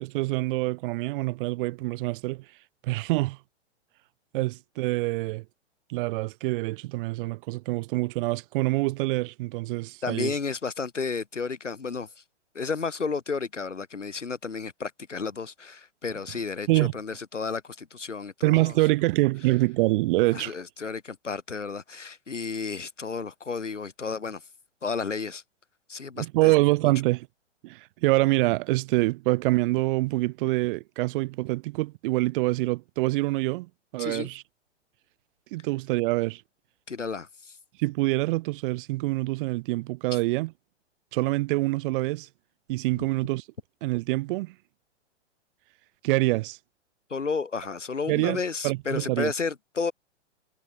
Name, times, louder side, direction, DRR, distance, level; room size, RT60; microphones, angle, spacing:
voice 1, 0.0-2.4 2.8-3.4 4.3-5.4 5.9-10.3 16.7-16.9 18.4-20.5 26.2-27.3 27.6-34.4 35.5-36.4 37.8-40.5 41.1-42.3 42.7-43.4 43.8-44.5 46.0-46.6 48.1-49.3, right 21 dB, 45° right, 6.2 m, -25 dB
voice 2, 10.0-12.1 12.5-18.7 20.3-24.4 24.8-25.4 25.9-26.5 34.0-34.3 36.9-37.5 40.1-40.2 43.0-43.1 47.1-49.9, left 5 dB, 90° left, 3.3 m, -32 dB
hypercardioid pair, 115°, 35 cm